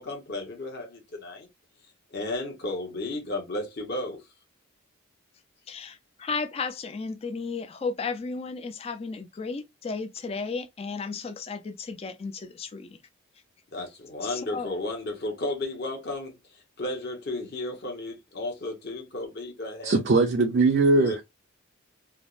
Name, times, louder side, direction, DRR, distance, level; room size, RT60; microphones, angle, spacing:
voice 1, 0.0-1.5 2.1-4.2 13.7-20.0 20.9-21.2, left 2 dB, 50° left, 0.9 m, -33 dB
voice 2, 5.7-13.0 14.2-14.7, left 4 dB, 30° left, 0.3 m, -34 dB
voice 3, 19.8-21.2, right 3 dB, 50° right, 0.5 m, -21 dB
3.3 x 2.0 x 2.4 m
head